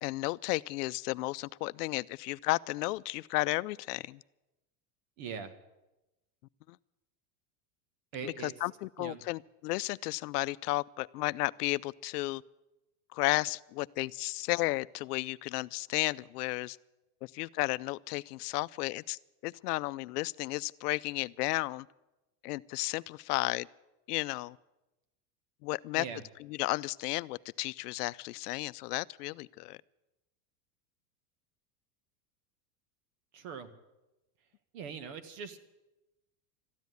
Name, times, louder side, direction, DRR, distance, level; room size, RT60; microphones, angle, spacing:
voice 1, 0.0-4.2 6.7-6.8 8.2-12.4 13.1-16.8 17.2-21.9 22.4-23.7 24.1-24.6 25.6-26.1 26.4-29.8, left 20 dB, 85° left, 0.6 m, -33 dB
voice 2, 5.2-5.5 8.1-8.5 9.0-9.2 25.9-26.2 33.3-33.7 34.7-35.6, right 6 dB, 55° right, 1.7 m, -41 dB
13.5 x 10.5 x 9.4 m
supercardioid pair, 160°, 46 cm